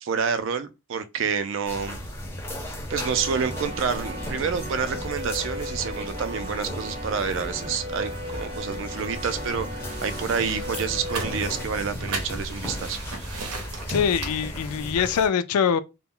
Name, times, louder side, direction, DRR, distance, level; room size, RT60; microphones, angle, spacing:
voice 1, 0.0-2.0 2.9-13.0, right 6 dB, 55° right, 0.3 m, -28 dB
sound 1, 1.6-15.3, equal, 10° left, 0.5 m, -35 dB
sound 2, 2.9-11.6, equal, 30° right, 0.7 m, -37 dB
sound 3, 9.9-15.1, right 3 dB, 90° right, 0.7 m, -37 dB
voice 2, 13.9-15.8, left 7 dB, 90° left, 0.3 m, -23 dB
2.1 x 2.0 x 3.6 m
head